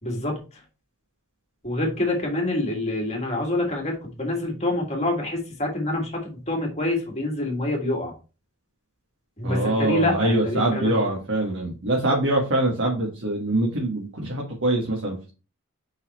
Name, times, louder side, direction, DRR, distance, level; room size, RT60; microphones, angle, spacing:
voice 1, 0.0-0.4 1.6-8.1 9.4-11.0, left 1 dB, 30° left, 1 dB, 2.3 m, -26 dB
voice 2, 9.4-15.3, right 1 dB, 55° right, -1 dB, 1.8 m, -24 dB
5.5 x 4.2 x 4.3 m, 0.32 s
head